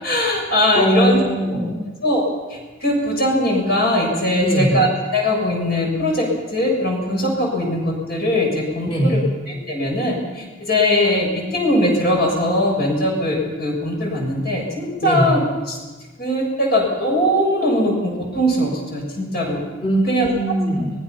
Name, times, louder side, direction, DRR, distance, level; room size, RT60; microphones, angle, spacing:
voice 1, 0.0-1.2 2.0-15.8 16.2-19.6 20.0-20.3, left 1 dB, 50° left, 0 dB, 7.3 m, -20 dB
voice 2, 0.8-1.8 4.4-4.8 8.9-9.3 15.0-15.3 19.8-20.9, right 1 dB, 25° left, -3 dB, 4.4 m, -20 dB
25.0 x 21.0 x 5.9 m, 1.3 s
head